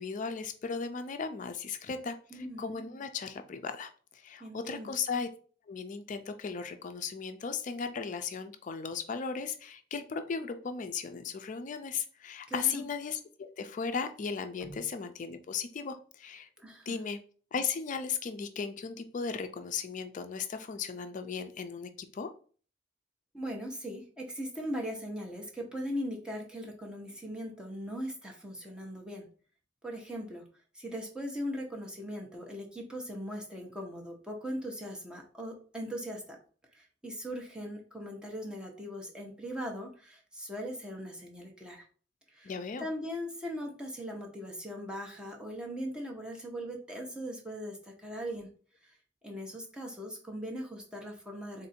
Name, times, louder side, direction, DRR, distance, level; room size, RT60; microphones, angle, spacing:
voice 1, 0.0-5.3 5.7-16.5 16.9-17.2 17.5-22.3 42.4-42.9, left 5 dB, 45° left, 8 dB, 0.4 m, -36 dB
voice 2, 2.3-2.6 4.4-4.9 12.5-12.8 14.6-14.8 16.6-17.0 23.3-29.3 29.8-30.4 30.7-36.4 36.7-41.9 42.3-42.5 42.8-48.5 48.8-49.0 49.2-51.7, equal, 5° right, 0 dB, 0.8 m, -39 dB
3.6 x 2.6 x 4.2 m, 0.41 s
head